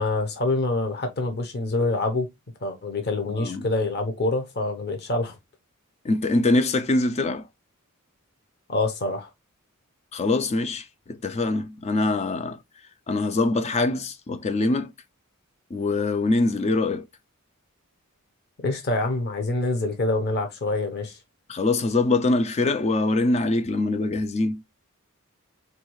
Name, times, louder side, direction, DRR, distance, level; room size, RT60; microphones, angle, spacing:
voice 1, 0.0-2.3 2.6-5.3 8.7-9.3 18.6-21.2, left 2 dB, 50° left, 0.8 m, -26 dB
voice 2, 6.0-7.5 10.1-12.6 13.1-14.9 15.7-17.1 21.5-24.6, left 2 dB, 30° left, 0.4 m, -23 dB
4.1 x 2.3 x 3.0 m
head